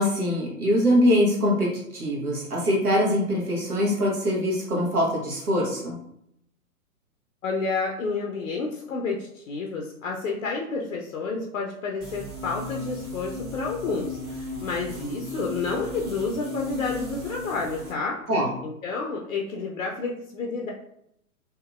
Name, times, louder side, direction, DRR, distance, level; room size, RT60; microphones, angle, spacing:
voice 1, 0.0-6.0 18.3-18.5, equal, 85° right, -3 dB, 1.2 m, -23 dB
voice 2, 7.4-18.2 18.6-20.7, left 4 dB, 65° left, 1 dB, 0.6 m, -30 dB
sound 1, 12.0-17.9, left 2 dB, 25° right, 1.3 m, -35 dB
2.8 x 2.7 x 2.3 m, 0.76 s
figure-of-eight pair, 115°, 44 cm